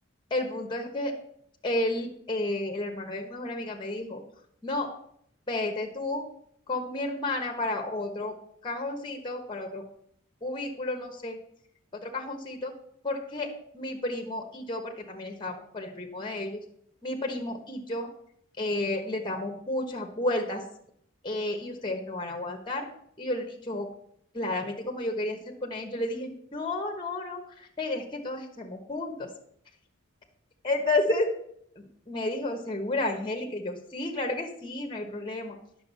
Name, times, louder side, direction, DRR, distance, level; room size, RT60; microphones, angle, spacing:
voice 1, 0.3-1.1 1.6-4.2 4.6-4.9 5.5-6.2 6.7-8.3 8.6-9.8 10.4-11.4 12.0-12.7 13.0-16.6 17.0-18.1 18.6-20.6 21.2-22.9 23.2-23.9 24.3-29.3 30.6-31.3 31.8-35.6, left 2 dB, 20° left, 3 dB, 1.3 m, -31 dB
9.9 x 6.7 x 5.5 m, 0.68 s
head